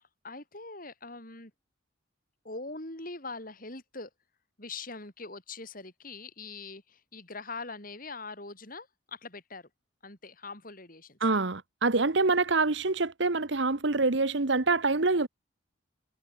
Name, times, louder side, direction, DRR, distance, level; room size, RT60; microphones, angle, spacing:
voice 1, 0.0-1.5 2.4-4.1 4.6-9.7 10.0-11.2, left 3 dB, 45° left, 5.5 m, -42 dB
voice 2, 11.2-15.3, right 3 dB, 65° right, 1.2 m, -26 dB
head